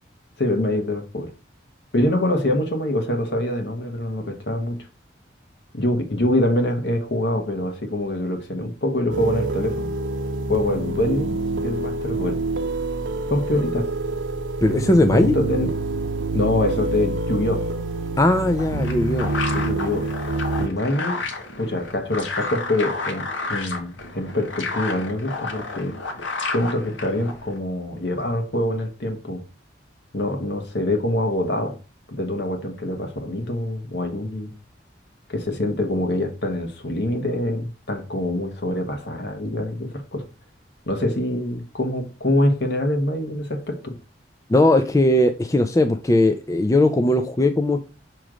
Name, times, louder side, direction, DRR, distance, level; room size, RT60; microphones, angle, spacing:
voice 1, 0.4-1.3 1.9-4.9 5.7-9.9 10.5-11.3 11.6-12.4 13.3-13.9 15.1-15.7 16.3-17.7 19.5-20.1 20.6-21.2 21.6-26.0 26.5-29.4 30.1-31.8 32.1-34.5 35.3-40.3 40.9-44.0, left 1 dB, 65° left, 1.1 m, -25 dB
sound 1, 9.1-20.7, right 2 dB, 85° right, 0.7 m, -27 dB
voice 2, 14.6-15.3 18.2-19.3 44.5-47.8, left 1 dB, 15° left, 0.3 m, -18 dB
sound 2, 18.3-27.6, left 3 dB, 90° left, 1.2 m, -31 dB
6.1 x 3.1 x 4.9 m
head